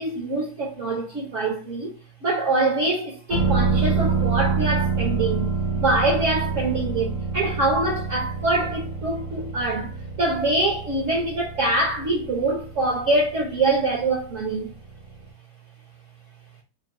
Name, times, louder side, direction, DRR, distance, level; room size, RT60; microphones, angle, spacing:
voice 1, 0.0-14.7, right 2 dB, 50° right, 1.0 m, -24 dB
sound 1, 3.3-14.9 15.2-15.3, right 4 dB, 80° right, 2.5 m, -27 dB
4.5 x 2.3 x 3.7 m
omnidirectional pair, 2.1 m